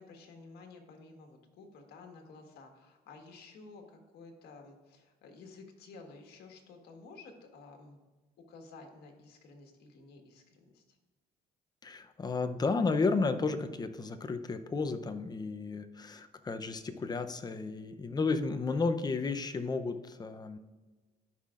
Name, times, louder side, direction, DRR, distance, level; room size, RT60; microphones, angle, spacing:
voice 1, 0.0-8.0 8.5-11.0, left 3 dB, 70° left, 3 dB, 1.6 m, -52 dB
voice 2, 11.8-20.6, left 4 dB, 25° left, 8 dB, 0.7 m, -32 dB
13.5 x 5.8 x 2.5 m, 1.2 s
cardioid pair, 110°, 17 cm